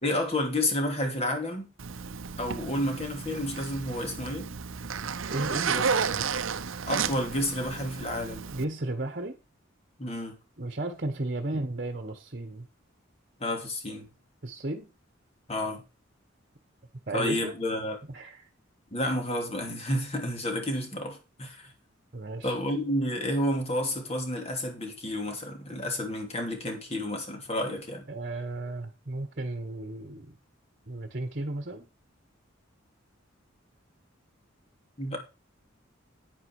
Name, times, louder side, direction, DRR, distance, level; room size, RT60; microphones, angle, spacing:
voice 1, 0.0-1.7 2.4-4.5 5.6-6.3 6.9-8.5 10.0-10.4 13.4-14.1 15.5-15.8 17.1-18.0 18.9-21.7 22.4-28.1 35.0-35.2, left 1 dB, 30° left, 4 dB, 3.0 m, -30 dB
Zipper (clothing), 1.8-8.6, right 6 dB, 80° right, 0.8 m, -32 dB
voice 2, 5.3-5.8 8.5-9.4 10.6-12.7 14.4-14.9 17.1-17.6 18.1-18.5 22.1-22.5 28.1-30.4 30.9-31.9, right 2 dB, 45° right, 8 dB, 1.3 m, -34 dB
9.7 x 9.6 x 4.8 m, 0.29 s
head